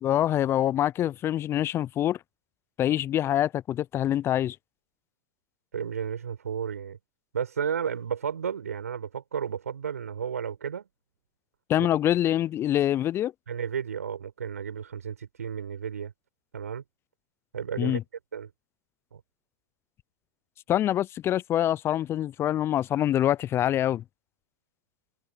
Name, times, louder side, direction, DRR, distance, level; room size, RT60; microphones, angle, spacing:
voice 1, 0.0-2.2 2.8-4.6 11.7-13.3 17.8-18.0 20.7-24.0, left 12 dB, 30° left, 0.7 m, -25 dB
voice 2, 5.7-7.0 7.3-10.9 11.8-11.9 13.5-16.1 16.5-16.8 17.5-18.0 18.3-18.5 19.1-19.2, right 7 dB, 80° right, 7.4 m, -33 dB
figure-of-eight pair, 95°, 8 cm